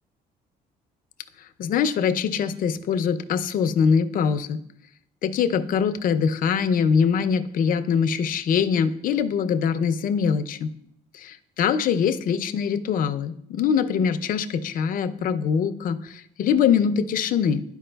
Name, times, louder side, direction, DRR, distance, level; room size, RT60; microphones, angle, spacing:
voice 1, 1.4-4.6 5.2-10.7 11.1-17.6, left 7 dB, 55° left, 10 dB, 0.5 m, -23 dB
11.5 x 4.6 x 2.2 m, 0.72 s
cardioid pair, 110°, 17 cm